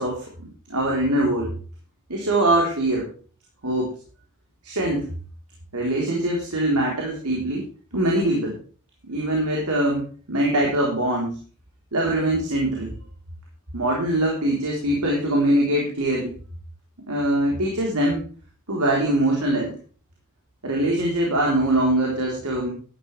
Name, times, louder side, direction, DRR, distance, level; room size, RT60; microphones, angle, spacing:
voice 1, 0.0-1.5 2.1-3.1 3.6-3.9 4.6-5.1 5.7-7.6 7.9-8.5 9.1-11.4 11.9-12.9 13.7-16.3 17.1-18.2 18.7-19.7 20.6-22.7, right 1 dB, 80° right, -2 dB, 3.8 m, -23 dB
13.0 x 11.5 x 3.3 m, 0.39 s
head